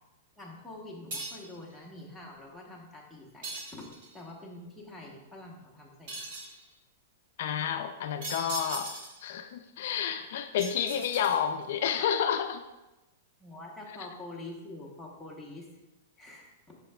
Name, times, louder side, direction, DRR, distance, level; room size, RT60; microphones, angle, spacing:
voice 1, 0.4-6.2 13.4-15.7 16.2-16.8, left 2 dB, ahead, -4 dB, 0.8 m, -46 dB
sound 1, 1.1-1.6 3.4-4.2 6.1-6.6 8.2-9.3 10.6-11.6, right 2 dB, 50° right, 1.1 m, -39 dB
voice 2, 7.4-8.9 9.2-12.6, left 8 dB, 55° left, 8 dB, 0.3 m, -30 dB
7.9 x 5.7 x 2.2 m, 1.0 s
supercardioid pair, 170°, 0 cm